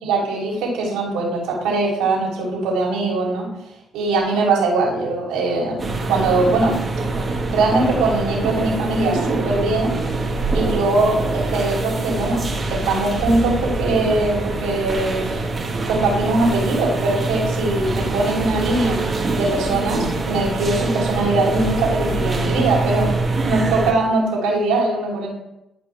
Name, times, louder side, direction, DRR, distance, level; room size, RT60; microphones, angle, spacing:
voice 1, 0.0-3.5 3.9-6.8 7.5-10.0 10.5-15.5 15.9-19.0 19.3-23.1 23.5-25.3, right 2 dB, 85° right, -3 dB, 3.2 m, -21 dB
sound 1, 5.8-23.9, right 2 dB, 30° right, 1.6 m, -24 dB
11.5 x 5.1 x 3.5 m, 0.90 s
supercardioid pair, 75°, 0 cm